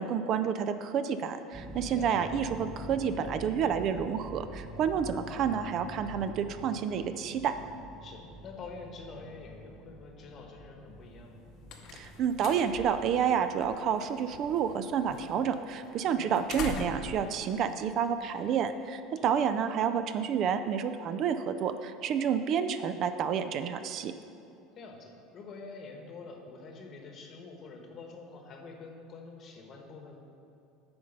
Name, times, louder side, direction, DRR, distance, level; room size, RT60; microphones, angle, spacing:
voice 1, 0.0-7.5 11.9-24.1, right 7 dB, 40° right, 10 dB, 0.3 m, -29 dB
sound 1, 1.5-15.5, equal, 25° right, 1.4 m, -47 dB
voice 2, 8.0-11.4 16.0-16.4 19.2-19.3 24.8-30.3, left 4 dB, 35° left, 3 dB, 1.1 m, -47 dB
sound 2, 11.2-18.7, left 5 dB, 50° left, 0.8 m, -45 dB
8.8 x 5.2 x 5.4 m, 2.6 s
cardioid pair, 155°, 0 cm